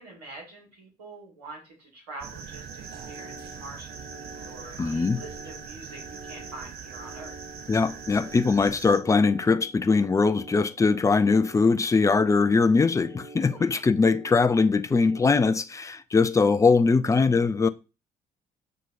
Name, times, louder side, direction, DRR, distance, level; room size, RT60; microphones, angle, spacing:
voice 1, 0.0-7.4 13.6-13.9, right 2 dB, 75° right, 1.9 m, -45 dB
sound 1, 2.2-9.0, right 6 dB, 50° right, 0.9 m, -42 dB
sound 2, 2.7-15.4, right 2 dB, 25° right, 1.1 m, -47 dB
voice 2, 4.8-5.2 7.7-17.7, left 4 dB, 15° left, 0.4 m, -21 dB
7.4 x 2.8 x 2.5 m
figure-of-eight pair, 45°, 21 cm